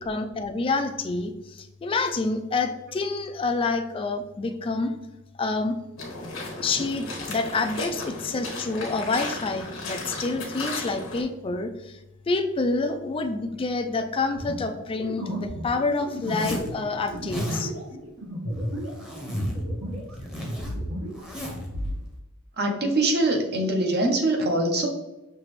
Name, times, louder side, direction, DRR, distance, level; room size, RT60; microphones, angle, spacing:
voice 1, 0.0-4.9 5.4-5.7 6.6-12.0 12.3-17.7, left 3 dB, 25° left, 6 dB, 0.3 m, -28 dB
sound 1, 6.0-11.2, left 2 dB, 90° left, 1.2 m, -35 dB
sound 2, 14.4-20.1 20.4-22.0, equal, 75° right, 1.4 m, -33 dB
Zipper (clothing), 16.2-16.7 17.1-17.6 18.5-19.6 19.9-21.7, equal, 5° right, 0.8 m, -35 dB
voice 2, 22.6-24.9, right 2 dB, 50° right, 2 dB, 0.9 m, -23 dB
5.8 x 2.9 x 3.1 m, 0.97 s
head